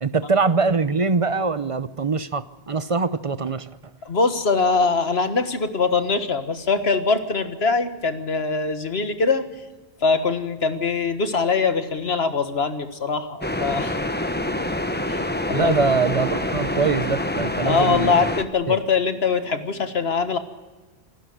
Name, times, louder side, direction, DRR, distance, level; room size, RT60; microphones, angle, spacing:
voice 1, 0.0-3.7 15.5-18.3 18.7-18.8, right 4 dB, 35° right, 14 dB, 0.7 m, -23 dB
voice 2, 4.0-9.4 10.0-14.0 15.1-15.2 15.5-15.7 17.6-20.4, left 4 dB, 85° left, 9 dB, 1.8 m, -22 dB
sound 1, 13.4-18.4, left 1 dB, 10° left, 1.0 m, -26 dB
26.0 x 12.0 x 9.4 m, 1.3 s
omnidirectional pair, 1.0 m